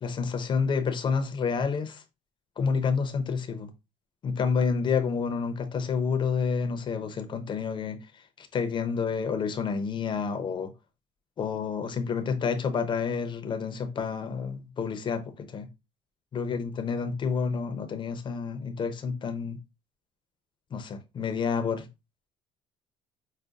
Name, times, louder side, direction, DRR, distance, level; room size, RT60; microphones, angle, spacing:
voice 1, 0.0-2.0 2.6-3.7 4.2-8.0 8.4-10.7 11.4-15.7 16.3-19.6 20.7-21.9, left 5 dB, 35° left, 0.6 m, -29 dB
5.1 x 2.1 x 2.4 m
cardioid pair, 110°, 14 cm